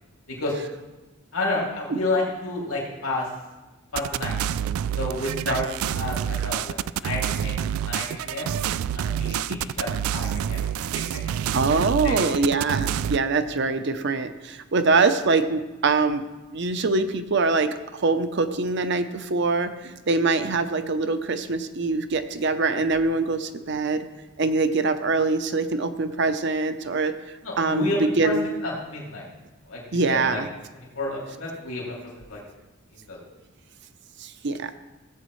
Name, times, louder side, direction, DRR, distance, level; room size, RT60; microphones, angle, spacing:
voice 1, 1.3-3.3 3.9-4.3 5.0-8.5 8.9-9.9 10.1-10.6 11.1-11.3 12.0-12.3 27.4-29.3 29.7-30.4 30.7-32.4 32.9-33.2, left 2 dB, 85° left, -4 dB, 2.8 m, -30 dB
sound 1, 4.0-13.2, right 9 dB, 85° right, 0.3 m, -28 dB
voice 2, 11.5-16.2 16.5-24.1 24.4-27.1 27.6-28.5 29.9-30.5 34.2-34.7, right 3 dB, 55° right, 10 dB, 0.7 m, -24 dB
16.5 x 7.8 x 3.2 m, 1.1 s
head